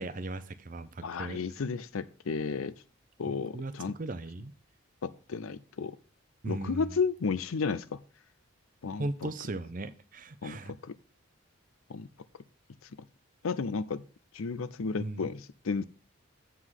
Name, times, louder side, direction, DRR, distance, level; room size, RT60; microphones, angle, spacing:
voice 1, 0.0-1.4 3.3-4.5 6.4-6.9 9.0-10.7 15.0-15.3, right 2 dB, 40° right, 0.6 m, -37 dB
voice 2, 1.0-2.7 3.2-3.9 5.0-6.0 6.5-8.0 8.8-9.3 10.4-10.9 11.9-12.1 13.4-14.0 14.3-15.8, left 5 dB, 85° left, 0.5 m, -33 dB
8.0 x 5.0 x 5.5 m
head